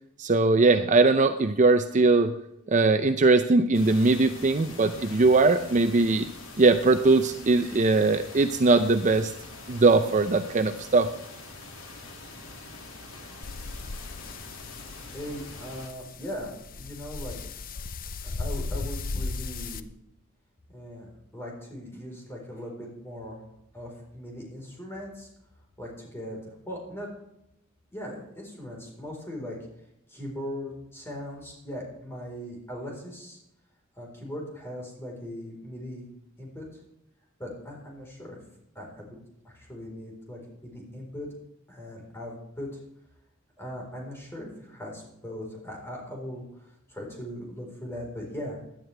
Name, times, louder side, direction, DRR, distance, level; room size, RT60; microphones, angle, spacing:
voice 1, 0.2-2.3 2.7-6.3 6.6-9.3 9.7-11.1, right 3 dB, 35° right, 8 dB, 0.6 m, -21 dB
sound 1, 3.7-15.9, left 3 dB, 80° left, 2.4 m, -44 dB
sound 2, 13.4-19.8, left 3 dB, 45° left, 0.6 m, -36 dB
voice 2, 15.1-17.4 18.2-19.9 20.7-23.4 23.7-25.3 25.8-27.1 27.9-29.6 30.1-33.4 34.0-36.1 36.4-36.8 37.4-38.4 38.7-39.2 39.4-41.3 41.7-42.8 43.6-48.6, equal, 10° left, -2 dB, 4.2 m, -39 dB
17.0 x 11.0 x 3.4 m, 0.83 s
head